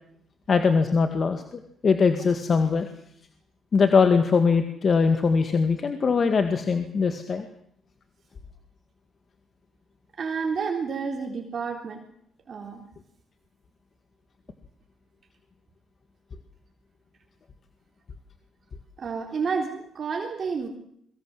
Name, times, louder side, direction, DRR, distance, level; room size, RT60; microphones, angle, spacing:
voice 1, 0.5-2.9 3.7-7.4, left 5 dB, 40° left, 8 dB, 2.0 m, -21 dB
voice 2, 10.2-12.0 12.5-12.9 19.0-20.7, right 5 dB, 45° right, 2 dB, 3.7 m, -30 dB
23.0 x 20.0 x 7.9 m, 0.70 s
cardioid pair, 100°, 0 cm